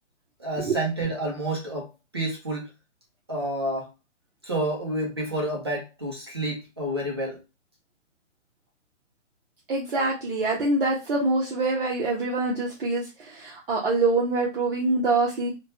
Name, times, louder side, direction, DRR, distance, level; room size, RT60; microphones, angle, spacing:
voice 1, 0.4-2.7 3.3-3.9 4.4-7.4, right 1 dB, 25° right, -2 dB, 0.4 m, -29 dB
voice 2, 9.7-15.5, right 3 dB, 50° right, -4 dB, 0.7 m, -25 dB
2.9 x 2.2 x 2.7 m, 0.26 s
hypercardioid pair, 160°, 37 cm